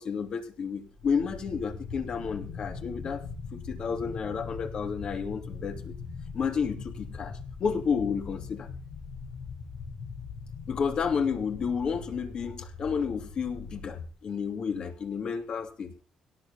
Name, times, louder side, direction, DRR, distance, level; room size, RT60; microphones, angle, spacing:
voice 1, 0.0-3.2 3.5-5.9 6.3-8.7 10.7-16.0, left 6 dB, 45° left, 4 dB, 3.0 m, -31 dB
sound 1, 0.9-14.1, left 4 dB, 65° left, 4.7 m, -41 dB
17.5 x 7.5 x 7.4 m, 0.39 s
cardioid pair, 130°, 2 cm